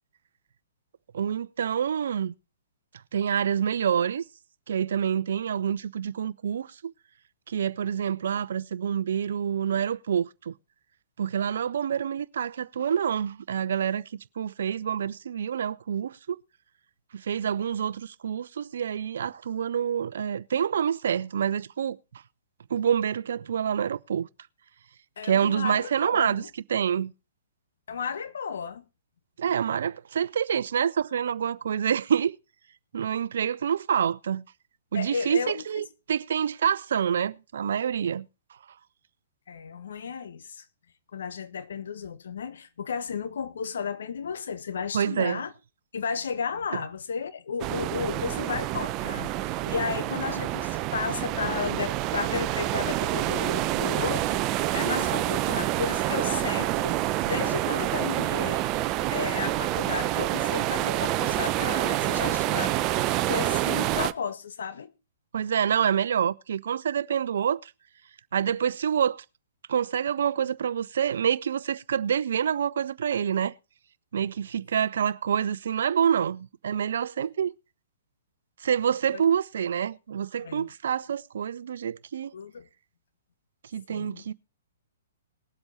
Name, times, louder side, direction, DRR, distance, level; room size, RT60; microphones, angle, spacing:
voice 1, 1.1-2.3 3.1-4.2 4.7-6.9 7.5-10.5 11.2-14.0 14.4-16.4 17.1-22.0 22.7-24.3 25.2-26.4 26.7-27.1 29.4-32.4 32.9-34.4 34.9-38.3 44.9-45.4 65.3-67.7 68.3-69.2 69.7-73.5 74.1-77.5 78.6-82.3 83.7-84.3, right 8 dB, 65° right, 0.7 m, -27 dB
voice 2, 25.2-26.5 27.9-28.8 34.9-35.8 39.5-40.6 41.1-45.5 45.9-54.4 54.7-58.7 59.1-64.9 79.1-79.2 80.4-80.7 82.3-82.7 83.9-84.3, left 6 dB, 70° left, 1.5 m, -33 dB
sound 1, 47.6-64.1, right 15 dB, 30° right, 0.7 m, -27 dB
19.5 x 8.0 x 4.1 m
hypercardioid pair, 125°, 0 cm